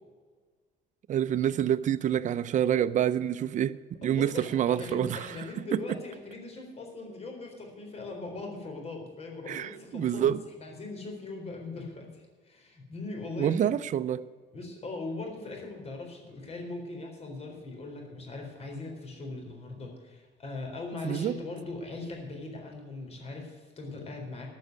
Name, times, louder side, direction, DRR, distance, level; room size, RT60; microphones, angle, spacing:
voice 1, 1.1-3.7 4.0-5.3 5.7-5.8 9.5-10.4 13.4-14.2 21.0-21.3, right 10 dB, 45° right, 0.6 m, -27 dB
voice 2, 4.0-13.7 14.5-24.5, left 3 dB, 40° left, 4.0 m, -40 dB
13.5 x 6.4 x 9.3 m
cardioid pair, 110°, 17 cm